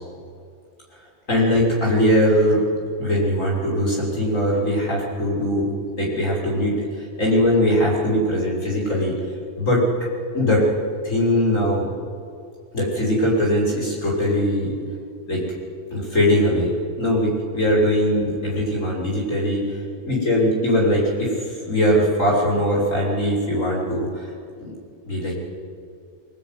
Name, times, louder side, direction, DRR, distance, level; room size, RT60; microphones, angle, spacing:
voice 1, 1.3-2.7 3.0-5.7 6.0-6.8 7.2-9.1 9.6-9.8 10.3-10.7 11.0-11.9 12.7-14.7 15.3-15.4 15.9-19.8 20.0-24.3 24.6-24.7 25.0-25.4, equal, 80° left, -4 dB, 6.9 m, -21 dB
24.5 x 19.0 x 9.6 m, 2.4 s
omnidirectional pair, 1.3 m